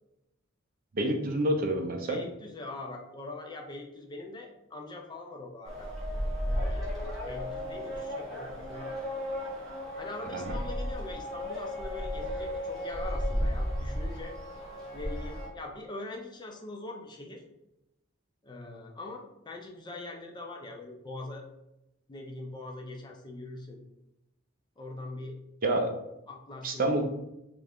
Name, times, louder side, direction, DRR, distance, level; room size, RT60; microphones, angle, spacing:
voice 1, 0.9-2.2 10.3-10.6 25.6-25.9 26.6-27.0, right 1 dB, 45° right, 4 dB, 0.5 m, -28 dB
voice 2, 2.1-5.9 6.5-7.0 7.3-9.0 10.0-14.4 14.9-17.4 18.4-21.4 22.1-23.8 24.8-25.4 26.3-27.0, left 2 dB, 20° left, 1 dB, 0.4 m, -42 dB
sound 1, 5.6-15.5, equal, ahead, 1.1 m, -34 dB
3.2 x 2.5 x 3.5 m, 0.89 s
head